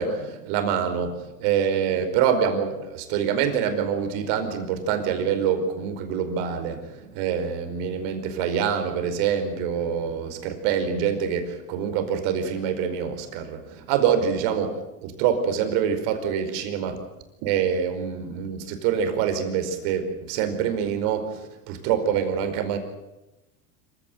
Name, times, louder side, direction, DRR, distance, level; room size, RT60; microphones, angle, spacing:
voice 1, 0.0-16.9 17.4-21.4 21.7-22.8, right 8 dB, 70° right, 7 dB, 5.1 m, -25 dB
26.5 x 16.5 x 9.4 m, 0.97 s
supercardioid pair, 100°, 44 cm